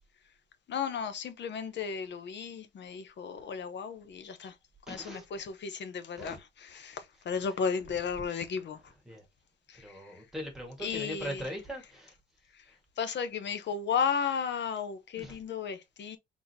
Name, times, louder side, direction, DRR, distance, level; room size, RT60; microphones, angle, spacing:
voice 1, 0.7-4.6 4.9-8.9 9.7-10.2 10.8-11.5 12.5-16.2, left 6 dB, 65° left, 0.9 m, -34 dB
voice 2, 4.9-5.3 6.2-6.4 7.4-7.6 7.9-8.0 8.8-9.2 9.8-12.1 15.2-15.4, equal, ahead, 1.8 m, -41 dB
4.1 x 3.7 x 2.8 m
wide cardioid pair, 150°, 20 cm